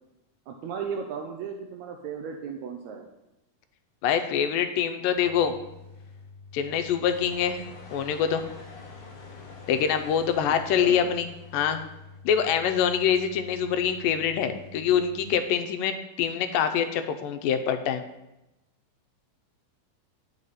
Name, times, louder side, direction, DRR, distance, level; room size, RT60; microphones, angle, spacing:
voice 1, 0.5-3.1 10.7-11.1, right 6 dB, 80° right, 3 dB, 1.7 m, -35 dB
voice 2, 4.0-5.6 6.5-7.6 7.9-8.4 9.7-11.8 12.3-18.0, left 8 dB, 85° left, 8 dB, 2.3 m, -25 dB
sound 1, 5.1-15.3, left 4 dB, 15° right, 2.8 m, -48 dB
sound 2, 7.1-12.2, left 4 dB, 55° left, 1.6 m, -48 dB
8.9 x 6.0 x 4.1 m, 0.93 s
omnidirectional pair, 3.9 m